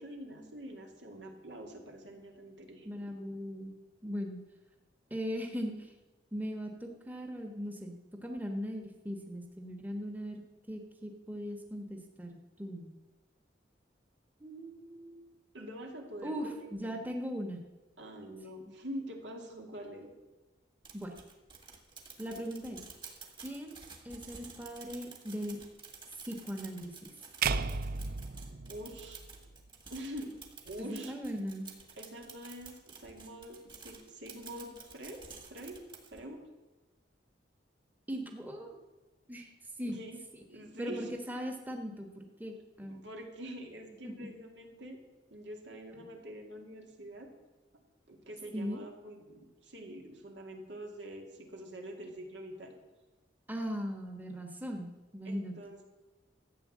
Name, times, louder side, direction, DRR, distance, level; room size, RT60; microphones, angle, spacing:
voice 1, 0.0-2.9 15.5-16.5 18.0-20.1 28.7-29.2 29.9-30.3 30.6-31.1 32.0-35.2 35.5-35.8 36.1-36.4 39.9-40.2 40.5-41.1 42.9-45.0 45.3-47.3 48.1-52.7 55.2-55.8, equal, 75° right, 2 dB, 2.4 m, -45 dB
voice 2, 2.8-3.7 4.0-4.4 5.1-5.9 6.3-10.4 10.7-12.9 14.4-15.2 16.2-17.6 20.9-21.1 22.2-22.8 23.4-23.7 24.0-25.6 26.2-27.1 30.8-31.7 38.1-38.8 39.3-39.5 39.8-40.0 40.5-43.0 44.0-44.3 48.5-48.8 53.5-55.6, equal, 10° right, 3 dB, 1.2 m, -39 dB
sound 1, 20.8-36.3, right 5 dB, 25° right, 1.9 m, -51 dB
sound 2, 27.4-29.7, right 5 dB, 55° right, 0.5 m, -34 dB
13.0 x 8.4 x 7.4 m, 1.1 s
head